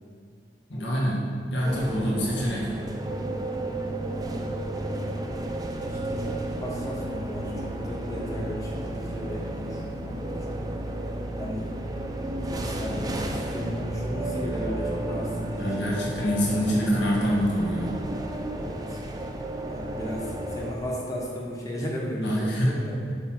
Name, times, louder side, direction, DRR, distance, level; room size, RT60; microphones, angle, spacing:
voice 1, 0.7-2.7 15.6-17.9 22.2-22.8, equal, 75° left, -4 dB, 1.7 m, -26 dB
sound 1, 1.6-20.7, right 1 dB, 20° right, 0.5 m, -32 dB
voice 2, 5.9-10.6 11.4-11.7 12.4-16.5 16.9-17.4 18.6-19.0 19.7-23.0, equal, 20° left, -4 dB, 1.2 m, -35 dB
6.7 x 5.6 x 4.4 m, 2.2 s
head